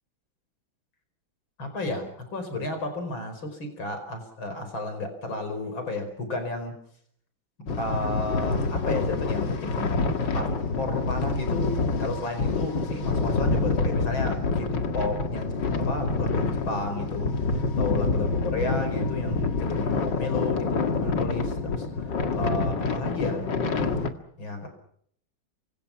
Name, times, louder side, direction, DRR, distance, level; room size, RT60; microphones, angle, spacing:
voice 1, 1.6-6.7 7.8-21.9 22.3-24.0 24.4-24.7, left 2 dB, 85° left, 7 dB, 5.6 m, -32 dB
sound 1, 7.7-24.1, left 3 dB, 65° left, 2.6 m, -27 dB
28.0 x 25.5 x 5.9 m, 0.67 s
omnidirectional pair, 2.1 m